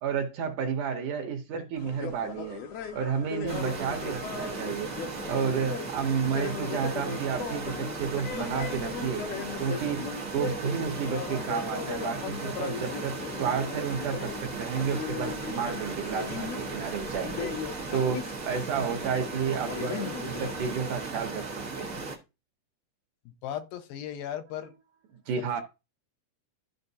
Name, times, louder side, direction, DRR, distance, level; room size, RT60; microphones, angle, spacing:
voice 1, 0.0-2.6 2.9-4.9 5.3-9.3 9.6-17.5 17.9-21.5 21.8-22.0 25.1-25.6, right 7 dB, 70° right, 2.1 m, -31 dB
sound 1, 1.8-20.7, left 7 dB, 70° left, 1.6 m, -38 dB
sound 2, 3.5-22.2, right 3 dB, 85° right, 0.7 m, -37 dB
voice 2, 23.3-24.7 25.4-25.6, left 10 dB, 85° left, 2.6 m, -37 dB
13.0 x 4.8 x 2.7 m
omnidirectional pair, 4.2 m